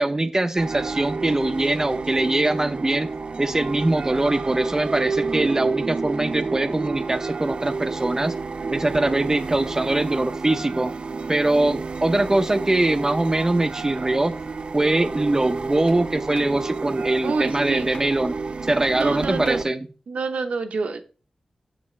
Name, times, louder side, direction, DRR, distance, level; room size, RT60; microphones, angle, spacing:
voice 1, 0.0-3.1 3.4-8.3 8.7-10.9 11.3-14.3 14.7-18.4 18.7-19.9, right 2 dB, 25° right, 9 dB, 0.6 m, -22 dB
sound 1, 0.6-19.6, right 4 dB, 55° right, 0.3 m, -30 dB
Clapping, 15.9-16.0 16.3-16.6 17.5-17.6 17.9-18.2 19.0-19.1 19.5-19.7, left 3 dB, 80° left, 1.1 m, -45 dB
voice 2, 17.2-17.9 18.9-19.7 20.1-21.0, right 4 dB, 85° right, 7 dB, 0.8 m, -27 dB
7.4 x 6.9 x 3.2 m, 0.38 s
wide cardioid pair, 70°, 2 cm